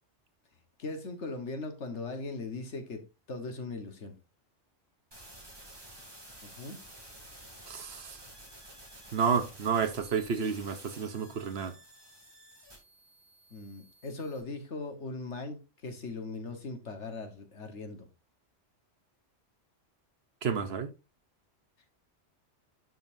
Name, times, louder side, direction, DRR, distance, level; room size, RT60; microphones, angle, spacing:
voice 1, 0.8-3.0 3.3-4.1 6.4-6.8 13.5-18.1, left 3 dB, 70° left, 1.7 m, -39 dB
sound 1, 5.1-14.4, right 1 dB, 20° right, 2.5 m, -52 dB
voice 2, 7.7-8.2 9.1-11.7 20.4-20.9, right 6 dB, 60° right, 1.1 m, -30 dB
11.5 x 5.4 x 2.6 m
omnidirectional pair, 1.2 m